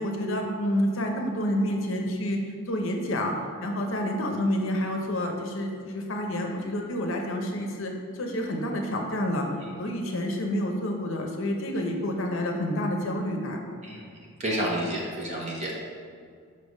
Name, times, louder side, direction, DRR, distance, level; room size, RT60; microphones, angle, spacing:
voice 1, 0.0-2.4 2.7-3.3 3.6-9.5 9.8-13.6, left 1 dB, 65° left, 2 dB, 0.7 m, -28 dB
voice 2, 13.8-15.7, right 1 dB, 30° right, -4 dB, 1.0 m, -30 dB
5.4 x 3.4 x 5.3 m, 2.1 s
head